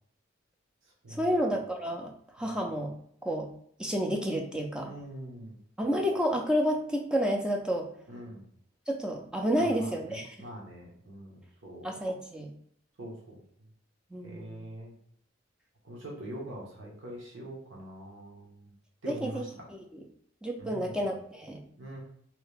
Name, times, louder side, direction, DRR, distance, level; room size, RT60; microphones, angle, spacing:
voice 1, 1.1-2.1 2.4-2.9 3.2-3.5 3.8-4.9 5.8-7.9 8.9-10.4 11.8-12.5 14.1-14.6 19.1-19.4 19.7-20.0 20.4-21.6, equal, 5° right, 0 dB, 0.4 m, -30 dB
voice 2, 4.8-5.6 8.1-8.4 9.6-11.9 13.0-13.4 14.2-14.9 15.8-18.7 19.0-19.7 20.6-21.0 21.8-22.0, right 1 dB, 80° right, -2 dB, 1.1 m, -43 dB
3.1 x 2.8 x 3.3 m, 0.65 s
head